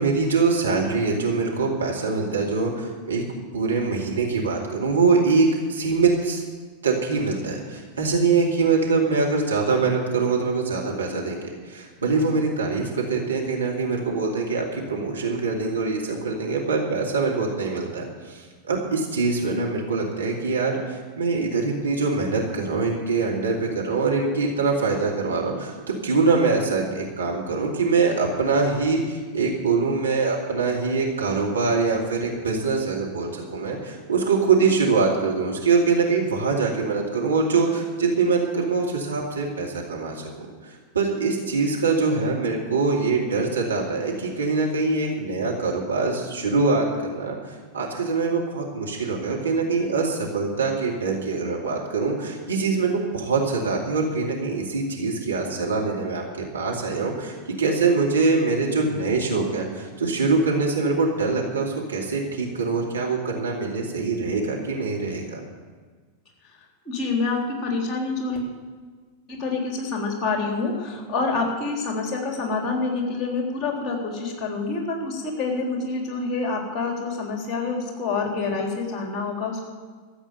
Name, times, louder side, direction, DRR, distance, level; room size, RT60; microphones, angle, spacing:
voice 1, 0.0-3.2 3.5-6.4 6.8-47.4 47.7-56.2 56.5-65.4, right 4 dB, 75° right, -1 dB, 2.4 m, -24 dB
voice 2, 66.9-68.4 69.3-79.6, left 3 dB, 25° left, 1 dB, 3.7 m, -27 dB
13.5 x 7.9 x 9.2 m, 1.5 s
figure-of-eight pair, 90°, 0 cm